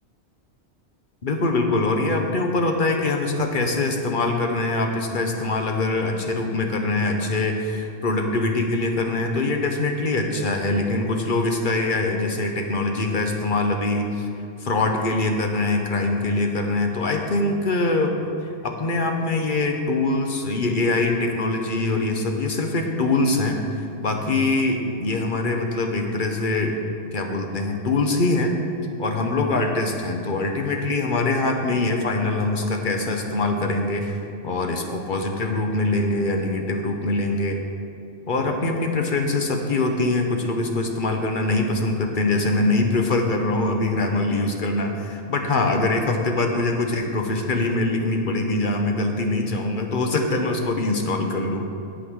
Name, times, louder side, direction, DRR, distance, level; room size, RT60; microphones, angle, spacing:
voice 1, 1.2-14.3 14.6-18.1 18.6-26.8 27.1-28.5 29.0-34.2 34.4-37.6 38.3-51.7, left 2 dB, 50° left, 3 dB, 1.1 m, -23 dB
8.9 x 7.7 x 6.3 m, 2.6 s
omnidirectional pair, 1.2 m